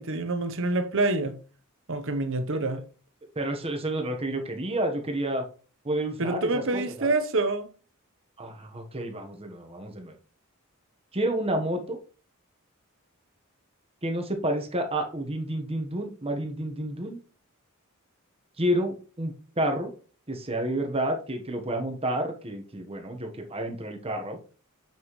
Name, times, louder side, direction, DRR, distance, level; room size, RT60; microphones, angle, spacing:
voice 1, 0.0-1.4 1.9-2.8 6.2-7.7, right 2 dB, 60° right, 1.0 m, -27 dB
voice 2, 3.3-5.4 5.8-7.1 8.4-10.1 11.1-12.0 14.0-17.2 18.6-19.9 20.3-24.4, right 1 dB, 25° right, 1.3 m, -30 dB
7.2 x 6.2 x 3.2 m
head